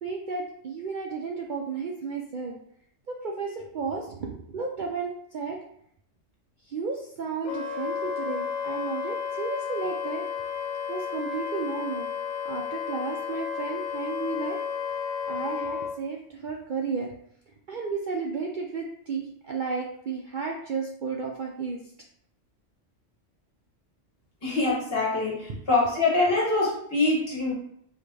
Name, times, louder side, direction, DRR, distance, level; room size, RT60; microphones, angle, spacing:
voice 1, 0.0-2.6 3.1-5.6 6.7-10.2 10.9-12.1 12.5-14.6 15.3-17.1 17.7-21.8 25.5-25.6, right 4 dB, 55° right, -1 dB, 0.5 m, -33 dB
Wind instrument woodwind instrument, 7.4-15.9, left 7 dB, 80° left, 1.0 m, -32 dB
voice 2, 24.4-27.6, left 2 dB, 50° left, -3 dB, 1.6 m, -24 dB
5.0 x 3.0 x 3.3 m, 0.70 s
omnidirectional pair, 1.3 m